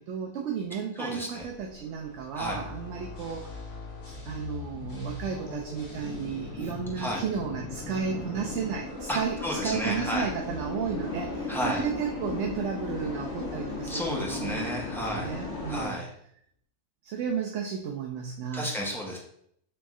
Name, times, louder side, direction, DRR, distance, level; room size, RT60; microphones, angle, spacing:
voice 1, 0.0-3.5 4.0-14.7 15.0-16.0 17.0-18.7, right 7 dB, 70° right, 1 dB, 0.8 m, -33 dB
voice 2, 1.0-1.5 2.4-2.6 7.0-7.2 9.1-10.3 11.5-11.8 13.9-15.4 15.7-16.1 18.5-19.2, equal, ahead, -4 dB, 0.6 m, -32 dB
sound 1, 1.5-15.9, left 3 dB, 55° left, 1.2 m, -38 dB
sound 2, 2.4-9.3, left 3 dB, 85° left, 1.3 m, -40 dB
3.4 x 3.1 x 3.6 m, 0.69 s
omnidirectional pair, 1.3 m